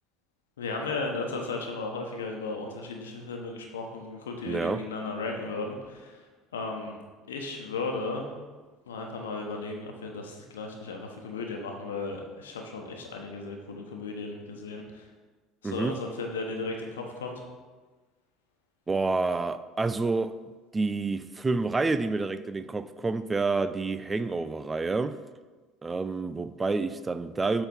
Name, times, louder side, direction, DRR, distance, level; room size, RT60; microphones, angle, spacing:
voice 1, 0.6-7.0 7.3-8.4 8.9-15.1 15.6-17.4, left 3 dB, 80° left, 1.1 m, -35 dB
voice 2, 4.5-4.8 15.6-16.0 18.9-20.4 20.7-25.2 25.8-27.6, right 3 dB, 20° right, 0.4 m, -28 dB
7.9 x 3.9 x 5.4 m
hypercardioid pair, 65°, 0 cm